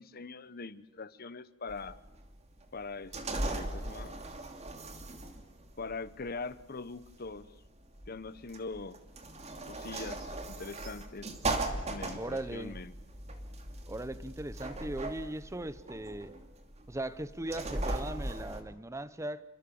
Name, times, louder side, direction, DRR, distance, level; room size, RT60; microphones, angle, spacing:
voice 1, 0.0-2.0 2.7-4.2 5.8-7.5 8.1-9.0 9.7-11.3 11.8-12.9, left 3 dB, 50° left, 1.0 m, -42 dB
sound 1, 1.7-18.6, right 2 dB, 35° right, 2.6 m, -39 dB
voice 2, 12.1-12.8 13.9-16.4 16.9-19.4, right 1 dB, 15° right, 0.9 m, -38 dB
28.0 x 24.5 x 7.2 m
head